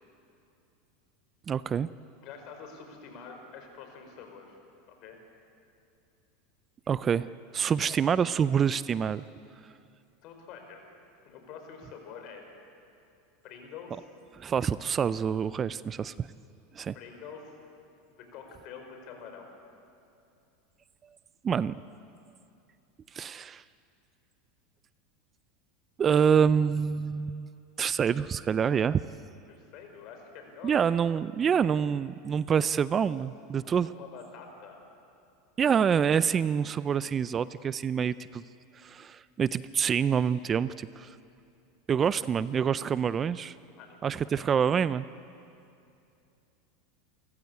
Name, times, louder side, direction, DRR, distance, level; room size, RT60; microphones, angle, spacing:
voice 1, 1.5-1.9 6.9-9.2 14.4-16.3 16.7-16.9 21.4-21.7 23.1-23.6 26.0-27.5 27.8-29.0 30.6-33.9 35.6-38.4 38.8-41.2 41.9-43.5 44.0-45.1, right 7 dB, 30° right, 17 dB, 0.4 m, -26 dB
voice 2, 2.2-4.6 5.0-5.2 7.8-8.0 10.2-10.8 11.2-12.4 13.4-14.1 16.9-17.6 18.1-19.5 29.5-30.8 33.8-34.8 43.8-44.0 44.3-44.4, left 6 dB, 50° left, 4 dB, 4.9 m, -46 dB
29.0 x 15.0 x 8.4 m, 2.6 s
supercardioid pair, 115°, 0 cm